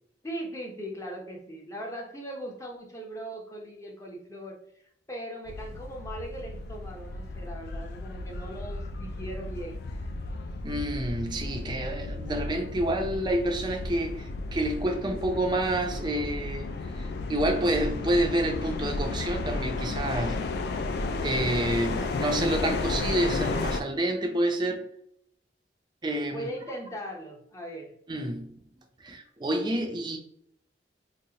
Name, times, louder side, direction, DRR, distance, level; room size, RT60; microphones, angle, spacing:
voice 1, 0.2-4.6 5.1-9.8 26.3-27.9, right 1 dB, 15° left, 0.6 m, -39 dB
sound 1, 5.5-23.8, left 3 dB, 60° left, 0.3 m, -33 dB
voice 2, 10.6-16.7 17.0-20.4 21.2-24.8 26.0-26.5 28.1-28.6 29.0-30.2, right 1 dB, 25° right, 0.5 m, -28 dB
4.0 x 2.1 x 2.8 m
head